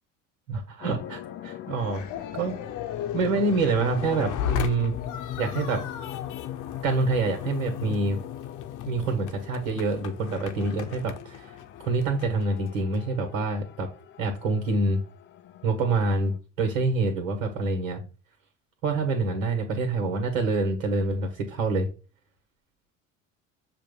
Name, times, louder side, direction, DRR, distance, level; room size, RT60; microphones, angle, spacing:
voice 1, 0.5-2.0 2.3-2.6 3.1-4.9 5.4-5.8 6.8-8.2 8.9-11.5 11.8-13.9 14.2-15.0 15.6-18.0 18.8-21.9, right 3 dB, 65° right, 3 dB, 1.8 m, -26 dB
sound 1, 0.8-16.4, left 11 dB, 30° left, 0.4 m, -40 dB
sound 2, 1.8-13.0, left 10 dB, 50° left, 0.9 m, -37 dB
7.1 x 2.6 x 5.3 m, 0.33 s
hypercardioid pair, 70°, 40 cm